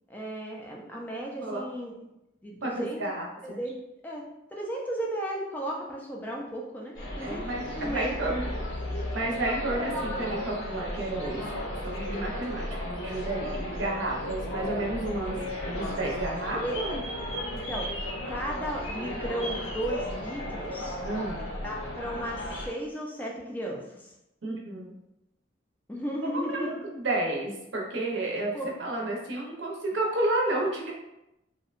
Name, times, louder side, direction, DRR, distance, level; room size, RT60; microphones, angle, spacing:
voice 1, 0.1-1.9 2.4-3.0 3.4-3.8 4.0-4.2 4.5-8.1 8.6-8.7 14.5-14.7 16.5-16.8 17.5-17.9 18.2-21.0 21.6-24.1 25.9-26.7 28.5-28.7, equal, 10° left, -2 dB, 0.3 m, -35 dB
voice 2, 2.6-3.6 7.2-8.4 9.1-11.4 11.8-17.0 21.0-21.4 24.4-25.0 26.5-28.5 28.8-30.9, right 2 dB, 75° right, -1 dB, 0.6 m, -31 dB
sound 1, 6.9-22.7, left 1 dB, 70° left, 0.7 m, -34 dB
2.7 x 2.1 x 2.4 m, 0.89 s
head